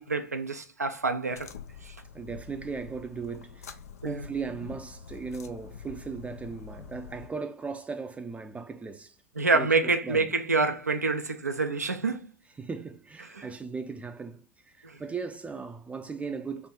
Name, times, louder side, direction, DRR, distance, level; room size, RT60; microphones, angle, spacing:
voice 1, 0.0-1.5 1.8-2.0 4.0-4.2 9.4-12.3 13.4-13.5 14.8-15.0, right 3 dB, 90° right, 0.5 m, -27 dB
sound 1, 1.3-7.3, left 6 dB, 75° left, 0.5 m, -46 dB
voice 2, 2.1-9.2 9.5-10.3 12.6-16.7, right 5 dB, 15° right, 0.5 m, -37 dB
4.5 x 2.6 x 4.5 m
figure-of-eight pair, 80°, 8 cm